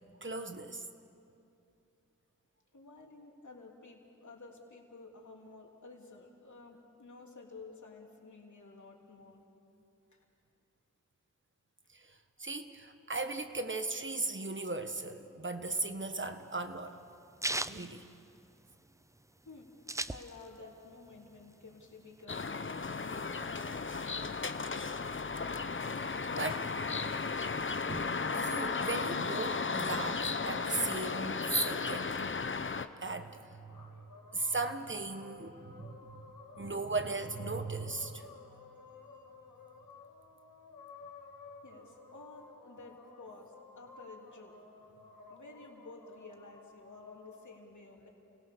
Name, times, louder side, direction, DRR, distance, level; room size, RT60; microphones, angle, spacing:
voice 1, 0.2-0.8 11.9-17.0 17.7-18.1 26.0-26.7 27.9-32.1 33.0-33.9 34.3-36.2 36.5-38.3, right 3 dB, 35° right, 8 dB, 1.4 m, -37 dB
voice 2, 2.7-9.4 10.1-10.2 12.4-12.5 19.4-23.2 38.5-38.6 39.0-39.3 41.6-44.6 45.3-48.1, left 3 dB, 65° left, 0 dB, 3.3 m, -52 dB
sound 1, 15.7-18.8 19.2-19.3 19.4-20.7 21.1-22.2, right 1 dB, 10° right, 0.6 m, -38 dB
sound 2, 22.3-32.9, left 4 dB, 40° left, 0.8 m, -35 dB
sound 3, 33.7-47.6, left 4 dB, 90° left, 1.9 m, -54 dB
29.0 x 17.5 x 6.9 m, 2.7 s
cardioid pair, 50°, 32 cm